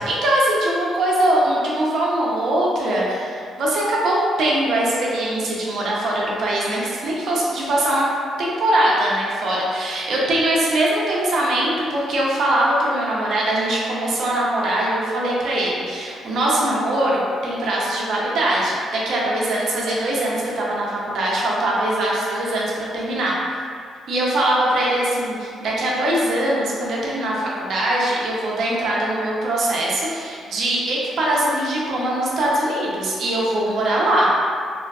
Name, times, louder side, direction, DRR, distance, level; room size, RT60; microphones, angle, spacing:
voice 1, 0.0-8.1 8.4-23.3 24.1-34.3, right 1 dB, 65° right, -4 dB, 0.5 m, -22 dB
2.4 x 2.3 x 2.3 m, 2.2 s
cardioid pair, 90°, 0 cm